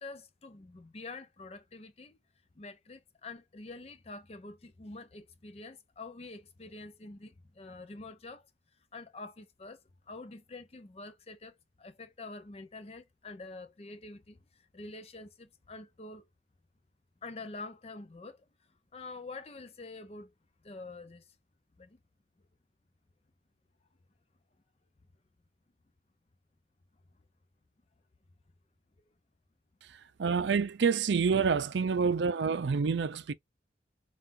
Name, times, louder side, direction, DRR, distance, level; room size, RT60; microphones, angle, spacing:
voice 1, 0.0-2.2 2.6-8.5 8.9-9.8 10.1-14.4 14.7-16.3 17.2-18.4 18.9-20.3 20.6-21.2 21.8-22.0, left 3 dB, 35° left, 0.6 m, -46 dB
voice 2, 29.9-33.3, right 5 dB, 75° right, 0.5 m, -28 dB
5.6 x 2.4 x 2.6 m
head